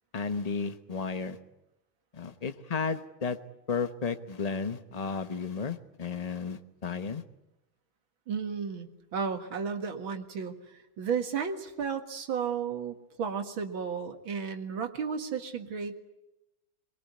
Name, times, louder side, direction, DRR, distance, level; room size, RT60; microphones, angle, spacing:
voice 1, 0.1-1.4 2.1-3.4 3.7-7.2, left 5 dB, 30° left, 9 dB, 0.7 m, -33 dB
voice 2, 8.3-10.5 11.0-15.9, right 6 dB, 65° right, 6 dB, 2.6 m, -33 dB
23.5 x 22.0 x 9.5 m, 0.94 s
omnidirectional pair, 2.3 m